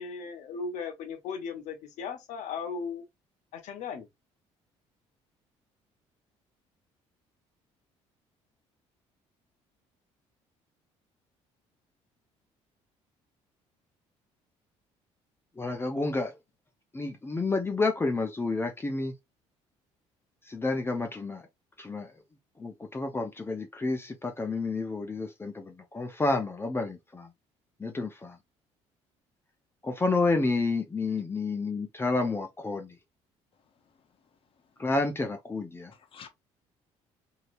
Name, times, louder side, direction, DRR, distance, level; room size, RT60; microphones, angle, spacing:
voice 1, 0.0-3.0 3.5-4.1, left 5 dB, 75° left, 1.0 m, -37 dB
voice 2, 15.6-16.3 16.9-19.1 20.5-21.4 21.8-22.1 22.6-27.3 27.8-28.4 29.8-33.0 34.8-35.9, left 3 dB, 20° left, 0.6 m, -30 dB
voice 3, 33.5-34.4 35.9-36.3, left 7 dB, 45° left, 0.9 m, -54 dB
3.2 x 2.8 x 2.6 m
cardioid pair, 90°, 12 cm